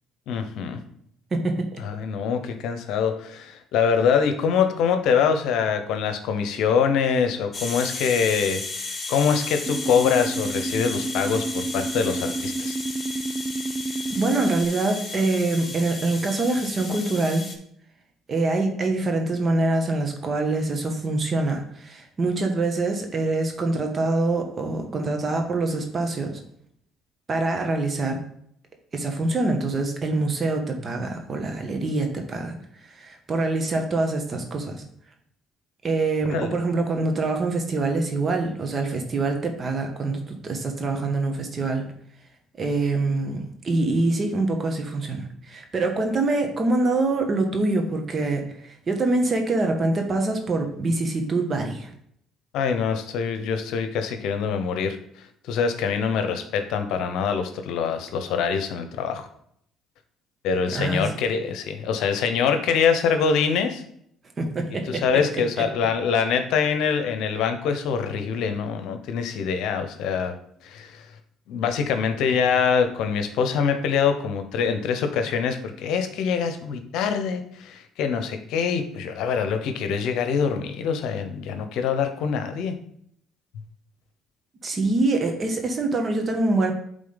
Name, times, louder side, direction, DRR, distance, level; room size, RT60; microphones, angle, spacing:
voice 1, 0.3-0.8 1.8-8.6 9.1-12.8 36.3-36.5 52.5-55.0 55.5-59.3 60.4-63.8 64.9-70.3 70.6-71.1 71.5-82.7, left 6 dB, 75° left, 7 dB, 0.9 m, -24 dB
voice 2, 1.3-1.8 14.1-17.5 18.3-26.4 27.3-28.2 28.9-32.5 32.8-34.8 35.8-41.9 42.6-51.9 60.7-61.1 64.4-65.0 84.6-86.7, right 2 dB, 40° right, 4 dB, 1.5 m, -25 dB
sound 1, 7.5-17.5, left 3 dB, 30° left, 1.4 m, -34 dB
sound 2, 9.7-14.7, right 3 dB, 20° right, 0.4 m, -30 dB
8.6 x 3.7 x 4.0 m, 0.68 s
supercardioid pair, 75°, 0 cm